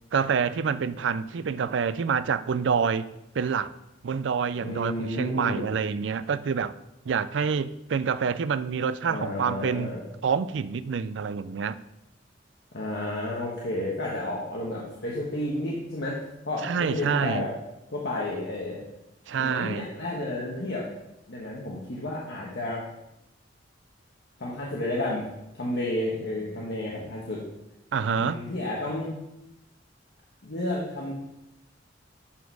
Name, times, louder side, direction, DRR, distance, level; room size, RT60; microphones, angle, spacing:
voice 1, 0.1-3.1 3.3-3.7 4.0-6.7 7.1-9.9 10.2-11.8 16.6-17.5 19.3-19.9 27.9-28.4, right 6 dB, 75° right, 0.4 m, -27 dB
voice 2, 4.6-5.7 9.0-10.0 12.7-16.2 16.5-17.5 17.9-18.8 19.4-20.9 21.3-22.9 24.4-25.2 25.5-27.4 28.2-29.1 30.4-31.1, left 1 dB, 65° left, 1.4 m, -31 dB
11.5 x 4.3 x 4.7 m
head